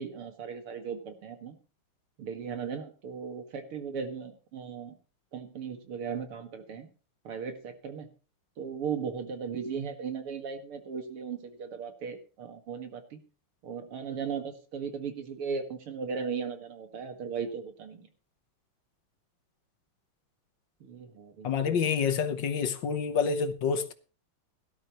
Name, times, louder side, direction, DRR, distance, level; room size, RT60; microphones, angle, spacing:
voice 1, 0.0-1.6 2.2-5.0 5.3-6.9 7.2-8.1 8.6-13.2 13.6-18.1 20.8-21.8, right 6 dB, 85° right, 2.7 m, -37 dB
voice 2, 21.4-23.9, left 6 dB, 60° left, 1.7 m, -28 dB
17.5 x 12.5 x 3.0 m
omnidirectional pair, 2.4 m